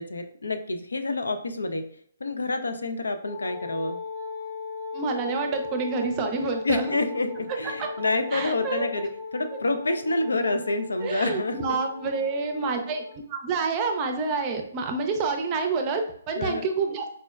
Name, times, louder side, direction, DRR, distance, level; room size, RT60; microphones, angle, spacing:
voice 1, 0.0-1.9 2.2-4.0 6.6-11.8 16.4-16.7, left 2 dB, 90° left, 7 dB, 0.4 m, -28 dB
Wind instrument woodwind instrument, 3.2-13.2, left 4 dB, 70° left, 0.9 m, -38 dB
voice 2, 4.9-6.9 7.6-7.9 8.3-8.9 11.0-17.2, right 4 dB, 30° right, 4 dB, 0.4 m, -28 dB
4.2 x 2.1 x 2.3 m, 0.63 s
hypercardioid pair, 145°, 0 cm